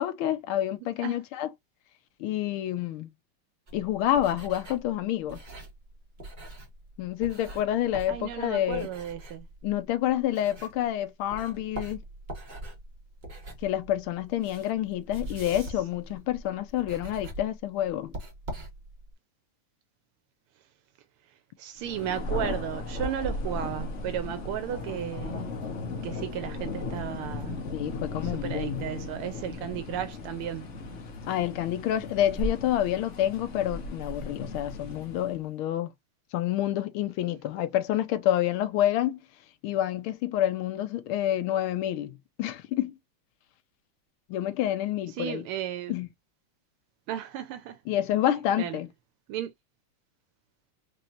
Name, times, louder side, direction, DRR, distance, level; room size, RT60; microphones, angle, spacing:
voice 1, 0.0-1.5 2.2-3.1 3.7-5.4 7.0-8.9 9.6-12.0 13.6-18.1 27.7-28.9 31.3-35.9 36.3-39.2 39.6-42.9 44.3-45.4 45.9-46.1 47.9-48.9, left 12 dB, 75° left, 1.5 m, -28 dB
sound 1, 3.7-11.0 11.3-19.1, right 1 dB, 25° right, 1.1 m, -43 dB
voice 2, 8.1-9.5 21.6-25.5 26.0-27.7 28.2-30.7 45.1-45.9 47.1-47.8 48.3-48.8 49.3-49.5, right 10 dB, 80° right, 1.5 m, -34 dB
Thunder, 21.8-35.4, left 2 dB, 45° left, 1.0 m, -36 dB
4.5 x 3.1 x 2.5 m
omnidirectional pair, 2.4 m